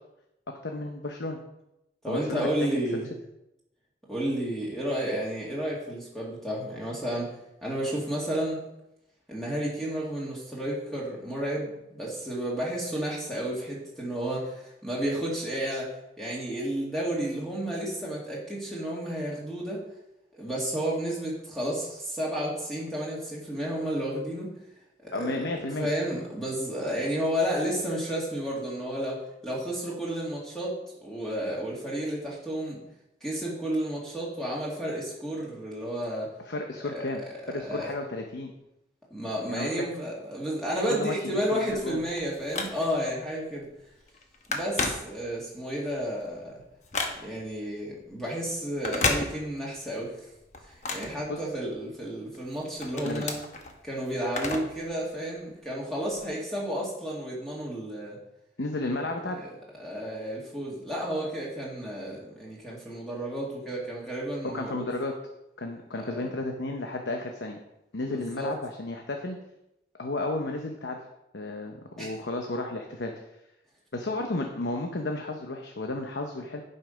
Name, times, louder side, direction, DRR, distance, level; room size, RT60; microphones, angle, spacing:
voice 1, 0.6-1.4 2.1-2.8 25.1-25.9 36.5-38.5 39.5-39.8 40.9-41.1 41.5-42.0 51.3-51.4 53.0-53.2 58.6-59.5 64.4-65.1 65.6-67.6 67.9-69.4 70.0-71.0 71.3-73.1 73.9-76.6, left 2 dB, 75° left, 3 dB, 0.9 m, -33 dB
voice 2, 2.0-3.1 4.1-7.3 7.6-8.6 9.3-19.8 20.3-24.5 25.0-30.7 31.0-32.8 33.2-36.3 36.8-37.0 37.5-37.9 39.1-43.7 44.5-46.6 47.2-50.1 50.6-53.3 53.8-58.2 59.3-59.5 59.8-64.9 66.0-66.3 68.1-68.5 72.0-72.2, right 1 dB, ahead, -5 dB, 2.0 m, -32 dB
Telephone, 41.7-43.1 43.6-43.8 44.1-45.6 46.0-47.5 48.7-49.8 50.1-51.9 52.3-54.9 55.2-55.3 56.1-56.2, left 3 dB, 40° left, 1.1 m, -33 dB
11.0 x 5.4 x 5.1 m, 0.89 s
head